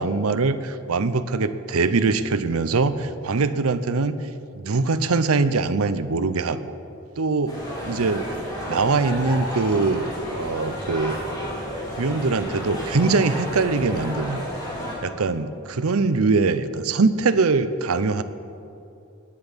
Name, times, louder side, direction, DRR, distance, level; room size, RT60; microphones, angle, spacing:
voice 1, 0.0-4.1 4.5-6.7 7.2-7.6 7.9-8.2 8.7-10.1 10.3-11.2 12.0-14.4 15.0-18.2, right 4 dB, 85° right, 12 dB, 0.7 m, -22 dB
sound 1, 7.5-15.0, equal, 15° left, 3.4 m, -32 dB
18.0 x 10.5 x 5.3 m, 2.6 s
head